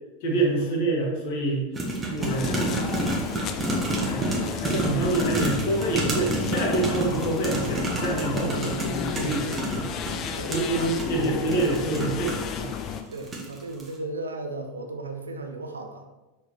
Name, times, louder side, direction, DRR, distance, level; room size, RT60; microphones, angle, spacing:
voice 1, 0.2-1.6 2.1-3.1 4.1-9.9 10.5-12.7, right 2 dB, 50° left, -1 dB, 2.0 m, -27 dB
sound 1, 1.8-12.6 13.1-13.5 13.8-13.9, right 2 dB, 20° right, 1.7 m, -29 dB
sound 2, 2.2-13.0, left 7 dB, 35° left, 0.6 m, -32 dB
voice 2, 8.4-8.8 9.2-9.6 10.4-11.6 13.1-16.0, right 2 dB, 75° right, 5 dB, 0.8 m, -36 dB
6.4 x 4.9 x 4.4 m, 1.1 s
figure-of-eight pair, 85°, 0 cm